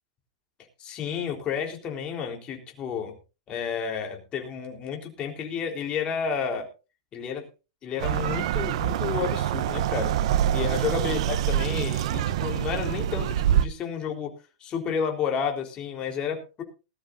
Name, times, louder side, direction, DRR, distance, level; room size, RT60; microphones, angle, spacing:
voice 1, 0.8-3.2 3.5-6.7 7.1-7.5 7.8-10.2 10.5-14.3 14.6-16.6, left 7 dB, 30° left, 2 dB, 3.7 m, -31 dB
sound 1, 8.0-13.7, right 11 dB, 65° right, 0.7 m, -25 dB
19.5 x 13.0 x 2.6 m, 0.31 s
hypercardioid pair, 135°, 4 cm